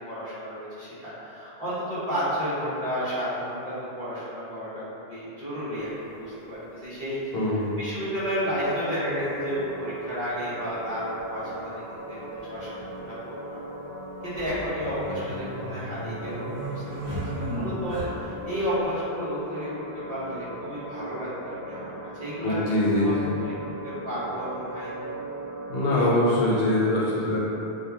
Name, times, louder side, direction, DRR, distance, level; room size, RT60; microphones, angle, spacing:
voice 1, 0.1-4.8 5.1-11.7 12.1-13.6 14.2-19.8 20.1-21.9 22.2-22.6 22.9-23.5 23.8-24.9, equal, 40° right, -13 dB, 0.9 m, -32 dB
sound 1, 5.9-6.0 7.4-7.5 9.0-9.1 9.2-9.3 11.2-11.3 11.6-11.7 12.4-12.8 14.2-18.4, right 1 dB, 70° right, 0.9 m, -35 dB
voice 2, 7.3-7.7 22.4-23.4 25.7-27.4, left 1 dB, 75° left, -7 dB, 0.8 m, -23 dB
sound 2, 8.1-26.1, right 1 dB, 30° left, 0.4 m, -39 dB
2.8 x 2.2 x 2.3 m, 2.9 s
omnidirectional pair, 1.0 m